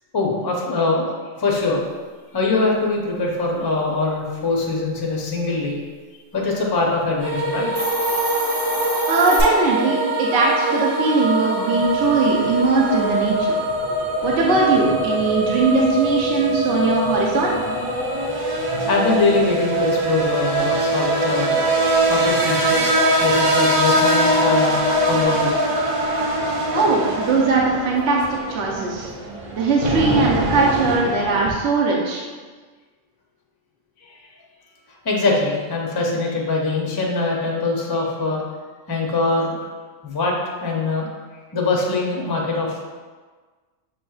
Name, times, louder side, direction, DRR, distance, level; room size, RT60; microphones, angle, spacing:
voice 1, 0.1-1.8 2.3-5.8 6.3-7.7 18.9-21.6 22.1-22.9 23.2-24.8 25.1-25.6 34.0-34.1 35.0-38.4 38.9-39.6 40.0-41.1 41.5-42.8, left 3 dB, 30° left, -2 dB, 0.4 m, -22 dB
sound 1, 7.2-25.2, equal, 85° right, 1.4 m, -25 dB
Hiss, 7.6-9.4, equal, 25° right, 1.1 m, -27 dB
voice 2, 9.0-13.6 14.2-17.5 26.7-29.1 29.5-32.2, right 3 dB, 65° right, -2 dB, 0.9 m, -20 dB
sound 2, 11.7-31.5, right 1 dB, 40° right, 0.5 m, -23 dB
6.3 x 3.1 x 2.3 m, 1.4 s
omnidirectional pair, 1.4 m